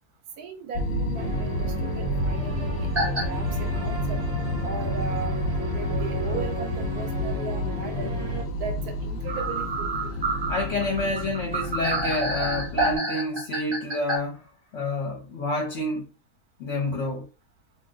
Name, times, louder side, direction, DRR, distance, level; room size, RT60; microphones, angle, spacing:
voice 1, 0.4-4.2 4.6-5.4 5.7-8.1 8.6-10.3, right 5 dB, 80° right, 1.2 m, -37 dB
sound 1, 0.7-13.0, left 1 dB, 75° left, 0.5 m, -30 dB
sound 2, 1.2-8.4, right 2 dB, 50° right, 0.9 m, -34 dB
sound 3, 2.9-3.2 3.8-3.9 5.2-5.3 6.0-6.1 6.4-6.5 9.3-14.2, right 2 dB, 20° right, 0.7 m, -28 dB
voice 2, 10.5-14.5 14.7-16.1 16.6-17.3, left 2 dB, 55° left, 1.0 m, -28 dB
2.6 x 2.2 x 3.7 m
omnidirectional pair, 1.6 m